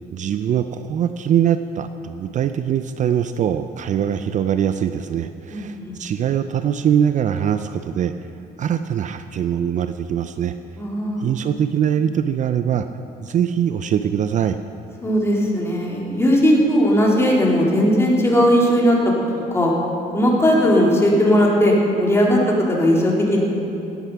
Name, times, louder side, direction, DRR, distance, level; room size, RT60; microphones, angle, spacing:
voice 1, 0.1-8.1 8.6-10.5 11.2-12.9 13.2-14.6, right 9 dB, 45° right, 10 dB, 0.5 m, -22 dB
voice 2, 5.5-5.9 10.8-11.3 15.0-19.0 19.5-19.7 20.1-23.4, equal, 15° left, -3 dB, 3.1 m, -17 dB
16.5 x 9.5 x 5.9 m, 2.7 s
cardioid pair, 110°, 17 cm